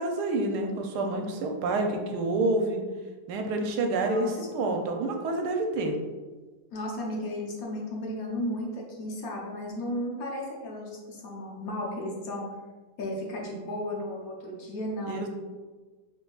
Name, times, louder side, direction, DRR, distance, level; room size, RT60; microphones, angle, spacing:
voice 1, 0.0-2.8 3.3-6.0 15.1-15.3, right 2 dB, 85° right, 3 dB, 1.1 m, -28 dB
voice 2, 4.0-4.6 6.7-12.5 13.0-15.3, left 1 dB, 65° left, -2 dB, 1.2 m, -34 dB
4.0 x 3.7 x 2.3 m, 1.3 s
omnidirectional pair, 1.7 m